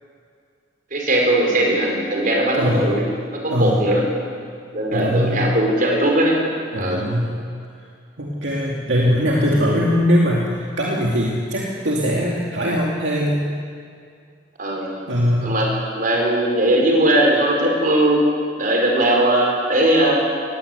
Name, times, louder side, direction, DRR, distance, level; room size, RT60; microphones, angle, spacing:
voice 1, 0.9-3.1 3.3-4.1 4.7-6.4 6.8-7.1 14.6-14.9 15.4-18.2 18.6-20.3, right 1 dB, 45° right, -1 dB, 4.8 m, -19 dB
voice 2, 2.6-2.9 3.5-3.9 4.9-5.5 6.7-7.4 8.2-13.4 15.1-15.6, equal, 70° right, -3 dB, 2.4 m, -21 dB
20.0 x 16.5 x 8.0 m, 2.2 s
head